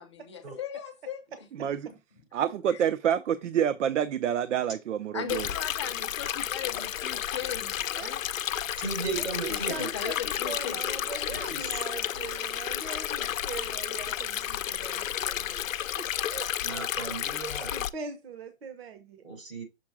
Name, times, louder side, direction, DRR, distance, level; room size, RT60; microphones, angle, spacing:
voice 1, 0.0-1.5 1.9-2.0 2.7-2.8 5.1-8.3 9.0-9.1 9.5-10.8, left 8 dB, 25° left, 0.6 m, -38 dB
voice 2, 1.6-1.9 2.3-5.5, right 9 dB, 70° right, 0.5 m, -27 dB
Stream, 5.3-17.9, left 11 dB, 90° left, 0.6 m, -32 dB
voice 3, 8.8-10.0 11.3-11.8 16.2-17.8 19.2-19.6, right 4 dB, 85° right, 3.8 m, -37 dB
voice 4, 9.4-15.7 16.0-16.5 16.7-16.9 17.7-19.2, right 5 dB, 50° right, 0.9 m, -41 dB
6.3 x 3.7 x 4.6 m
hypercardioid pair, 165°, 38 cm